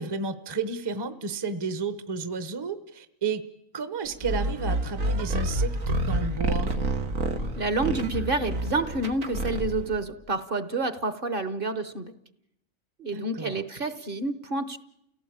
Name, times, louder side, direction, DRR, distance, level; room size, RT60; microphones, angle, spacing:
voice 1, 0.0-3.4 3.7-6.7 13.1-13.6, right 4 dB, 20° right, 12 dB, 0.8 m, -32 dB
sound 1, 4.2-10.0, right 1 dB, 90° right, 2.1 m, -28 dB
voice 2, 7.6-12.1 13.0-14.8, right 2 dB, 45° right, 13 dB, 1.2 m, -29 dB
29.5 x 17.0 x 8.6 m, 0.81 s
omnidirectional pair, 1.4 m